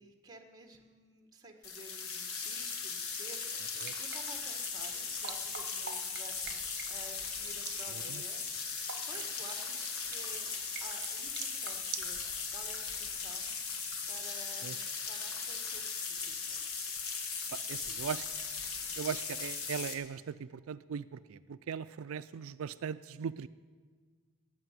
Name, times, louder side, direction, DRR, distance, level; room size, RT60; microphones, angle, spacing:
voice 1, 0.0-8.5 9.0-10.5 10.8-12.2 12.5-13.5 14.1-16.6, right 2 dB, 20° right, 4 dB, 1.3 m, -53 dB
sound 1, 1.6-19.9, left 5 dB, 85° left, 1.6 m, -38 dB
sound 2, 3.4-12.1, right 8 dB, 50° right, 1.1 m, -48 dB
sound 3, 9.1-11.7 12.0-13.2 13.5-13.6 13.9-14.3, left 1 dB, 50° left, 2.8 m, -57 dB
voice 2, 17.5-18.3 19.0-23.5, right 7 dB, 80° right, 12 dB, 0.4 m, -39 dB
14.0 x 9.3 x 9.3 m, 1.5 s
head